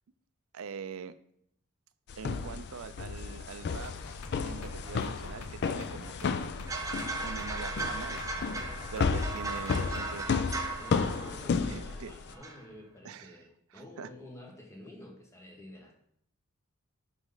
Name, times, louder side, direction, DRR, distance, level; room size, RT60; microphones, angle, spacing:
voice 1, 0.5-1.1 2.2-6.5 7.2-8.6 8.9-10.6 11.7-12.1 13.0-13.4 13.7-14.1, right 6 dB, 65° right, 13 dB, 0.4 m, -43 dB
sound 1, 2.1-12.3, left 5 dB, 50° left, 0.3 m, -33 dB
sound 2, 3.8-10.2, left 3 dB, 85° left, 0.7 m, -46 dB
sound 3, 6.7-12.0 12.3-12.6, right 3 dB, 15° right, 0.6 m, -37 dB
voice 2, 10.8-15.9, left 1 dB, 10° left, 1 dB, 1.0 m, -49 dB
5.3 x 5.0 x 3.9 m, 0.68 s
head